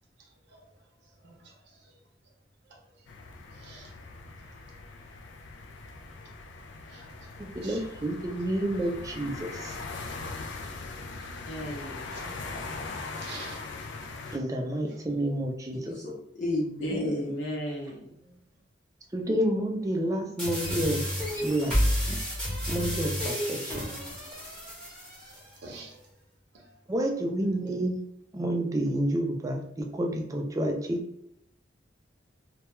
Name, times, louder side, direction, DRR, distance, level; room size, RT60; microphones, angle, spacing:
voice 1, 1.2-1.9 3.5-3.9 6.9-7.3 7.6-7.9 12.1-12.5 13.2-13.6 14.9-15.2 18.2-18.3 25.2-26.0 26.5-26.7, right 3 dB, 65° right, 1 dB, 0.6 m, -48 dB
sound 1, 3.1-14.4, left 3 dB, 70° left, 0.3 m, -40 dB
voice 2, 7.4-9.7 14.3-15.9 19.1-21.0 21.4-21.8 22.1-22.2 22.7-23.8 26.9-28.0 28.3-31.0, right 1 dB, 20° right, 1 dB, 0.3 m, -29 dB
voice 3, 11.5-12.2 16.8-18.1, equal, 90° left, -1 dB, 0.8 m, -34 dB
voice 4, 15.7-17.3, left 2 dB, 40° left, -4 dB, 0.6 m, -33 dB
sound 2, 20.4-25.4, equal, 5° left, 0.8 m, -30 dB
2.2 x 2.1 x 2.9 m, 0.78 s
head